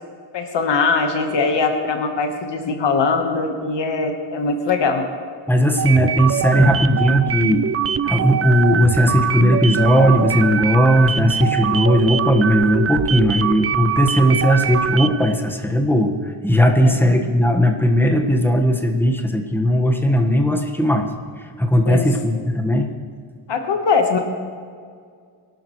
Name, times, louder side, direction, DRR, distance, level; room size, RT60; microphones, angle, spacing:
voice 1, 0.3-5.0 16.8-17.2 21.9-22.1 23.5-24.2, left 4 dB, 80° left, 4 dB, 1.4 m, -21 dB
voice 2, 5.5-7.6 8.0-21.1 21.6-22.9, equal, 5° left, 2 dB, 1.4 m, -17 dB
sound 1, 5.8-15.3, right 8 dB, 35° right, 0.4 m, -23 dB
23.0 x 12.0 x 3.2 m, 2.1 s
wide cardioid pair, 110°, 42 cm